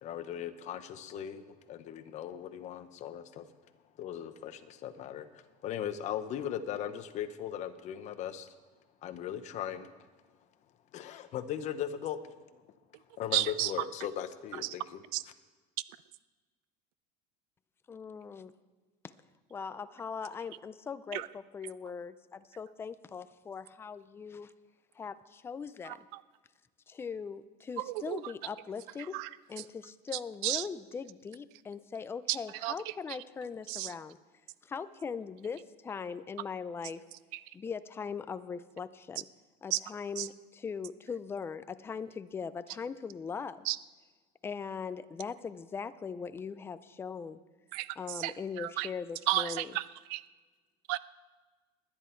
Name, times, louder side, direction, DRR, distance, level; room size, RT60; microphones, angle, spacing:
voice 1, 0.0-1.4 1.7-3.4 4.0-5.3 5.6-8.5 9.0-9.9 10.9-12.2 12.5-12.6 13.2-15.0, left 10 dB, 35° left, 9 dB, 0.9 m, -38 dB
voice 2, 13.3-13.7 14.5-14.7 15.1-15.2 21.1-21.3 25.8-26.2 27.8-28.3 29.1-29.3 30.4-30.7 32.3-33.2 33.7-33.9 37.3-37.4 39.7-39.8 40.2-40.3 43.6-43.8 47.7-48.9 49.3-50.2 50.9-51.0, right 17 dB, 70° right, 17 dB, 0.5 m, -33 dB
voice 3, 17.9-18.5 19.0-19.1 19.5-24.5 25.0-26.1 26.9-29.2 29.5-34.2 34.6-37.0 37.5-39.2 39.6-43.7 44.4-47.4 48.0-49.7, left 6 dB, 10° left, 13 dB, 0.3 m, -40 dB
20.0 x 10.5 x 4.5 m, 1.3 s
cardioid pair, 165°, 20 cm